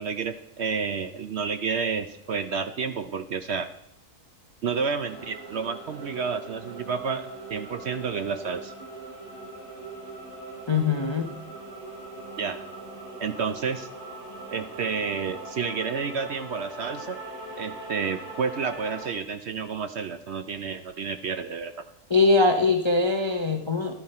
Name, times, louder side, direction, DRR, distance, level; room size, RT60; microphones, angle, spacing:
voice 1, 0.0-3.7 4.6-8.7 12.4-12.6 13.2-13.9 14.5-17.2 17.6-21.7, right 5 dB, 60° right, 9 dB, 0.7 m, -30 dB
sound 1, 5.0-19.1, right 2 dB, 85° right, 4.3 m, -41 dB
voice 2, 10.7-11.3 22.1-24.0, left 3 dB, 25° left, 4 dB, 0.6 m, -22 dB
12.0 x 11.5 x 4.3 m, 0.79 s
omnidirectional pair, 1.6 m